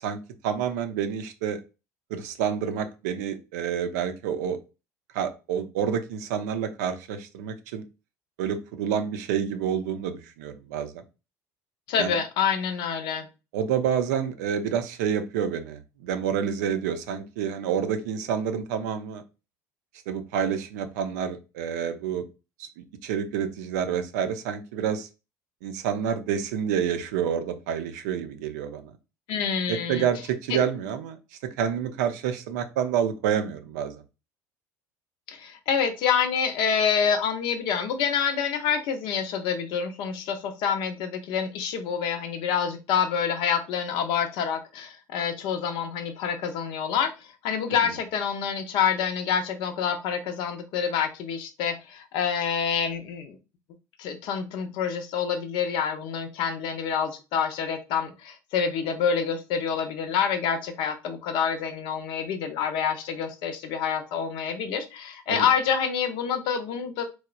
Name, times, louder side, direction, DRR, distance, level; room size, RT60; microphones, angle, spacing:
voice 1, 0.0-1.6 2.1-4.6 5.1-7.8 8.4-11.0 12.0-12.2 13.5-19.2 20.1-22.2 22.6-25.1 25.6-28.9 29.7-31.2 31.6-34.0 47.7-47.9 65.3-65.5, right 8 dB, 75° right, 8 dB, 0.4 m, -28 dB
voice 2, 11.9-13.3 29.3-30.1 30.5-30.6 35.3-47.1 47.4-53.4 54.0-67.0, left 7 dB, 65° left, 7 dB, 0.5 m, -27 dB
2.9 x 2.0 x 2.3 m, 0.29 s
hypercardioid pair, 70°, 9 cm